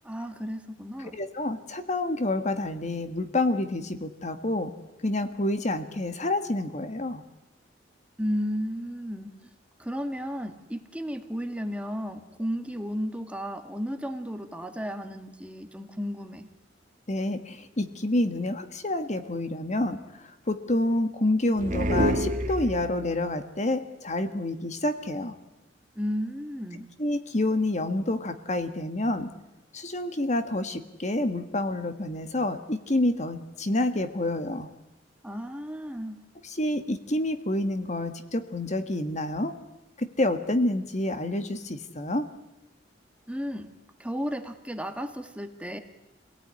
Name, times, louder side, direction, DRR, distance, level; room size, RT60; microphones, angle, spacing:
voice 1, 0.0-1.2 8.2-9.3 9.8-16.5 25.9-26.9 35.2-36.2 43.3-43.7 44.0-45.8, equal, 5° right, 7 dB, 1.7 m, -33 dB
voice 2, 1.0-4.7 5.0-7.2 17.1-25.4 27.0-29.3 29.7-34.7 36.4-39.6 40.0-42.3, left 1 dB, 40° left, 9 dB, 1.6 m, -28 dB
sound 1, 21.6-23.1, right 1 dB, 45° right, 1.8 m, -27 dB
26.5 x 18.0 x 9.8 m, 0.96 s
head